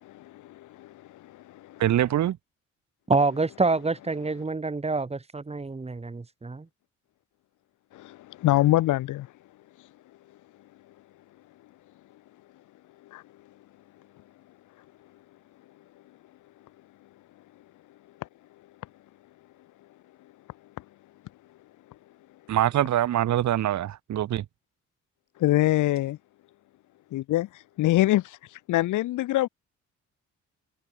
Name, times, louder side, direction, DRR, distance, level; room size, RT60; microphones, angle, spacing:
voice 1, 0.0-1.8 7.9-9.3 13.1-13.2 25.4-26.2 27.1-29.5, left 15 dB, 85° left, 1.5 m, -25 dB
voice 2, 1.8-2.4 22.5-24.4, right 12 dB, 65° right, 1.6 m, -24 dB
voice 3, 3.1-6.7, right 3 dB, 20° right, 2.9 m, -27 dB
cardioid pair, 90°, 30 cm